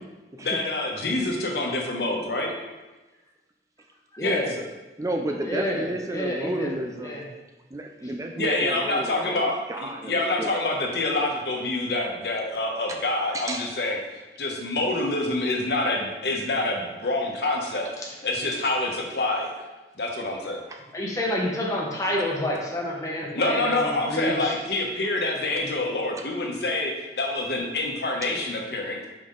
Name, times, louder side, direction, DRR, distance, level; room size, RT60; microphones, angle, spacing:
voice 1, 0.4-2.5 4.2-4.4 8.3-14.0 14.4-19.5 20.0-20.6 23.3-29.1, left 2 dB, 70° left, 0 dB, 1.0 m, -26 dB
voice 2, 4.1-4.5 5.4-7.2 20.9-24.5, left 1 dB, 20° left, -3 dB, 1.1 m, -29 dB
voice 3, 5.0-7.2 7.7-10.6 10.8-11.0 13.3-13.7 20.7-20.8 28.2-28.3, right 1 dB, 20° right, 3 dB, 0.3 m, -32 dB
5.5 x 5.0 x 3.8 m, 1.1 s
head